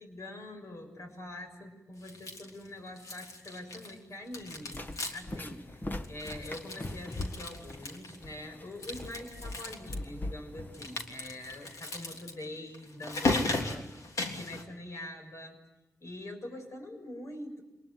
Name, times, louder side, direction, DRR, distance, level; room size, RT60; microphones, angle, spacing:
voice 1, 0.0-4.8 5.1-15.6 16.0-17.6, left 1 dB, 60° left, 4 dB, 6.9 m, -44 dB
sound 1, 2.0-2.7 3.0-4.0 4.3-5.4 5.7-5.8 6.0-8.2 8.7-10.0 10.7-14.6, left 2 dB, 80° left, 3.4 m, -36 dB
sound 2, 4.3-11.8, left 1 dB, 35° left, 1.9 m, -42 dB
26.0 x 20.5 x 9.6 m, 1.0 s
cardioid pair, 50°, 6 cm